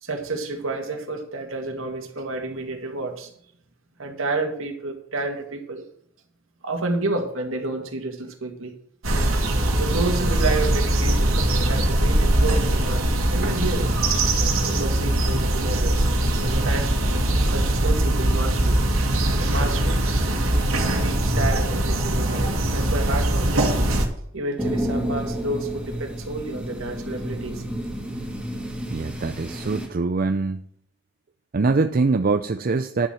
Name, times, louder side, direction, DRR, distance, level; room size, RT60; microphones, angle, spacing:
voice 1, 0.0-3.3 4.0-5.9 6.6-8.8 9.8-13.9 14.6-16.1 16.4-16.9 17.5-18.8 19.2-20.0 21.0-23.7 24.3-27.6, right 2 dB, 70° right, 3 dB, 2.4 m, -30 dB
sound 1, 9.0-24.1, right 1 dB, 85° right, 2.5 m, -21 dB
sound 2, 24.6-29.9, equal, 5° right, 2.3 m, -30 dB
voice 2, 28.9-30.6 31.5-33.1, right 3 dB, 45° right, 8 dB, 0.5 m, -23 dB
11.0 x 7.3 x 6.4 m, 0.66 s
head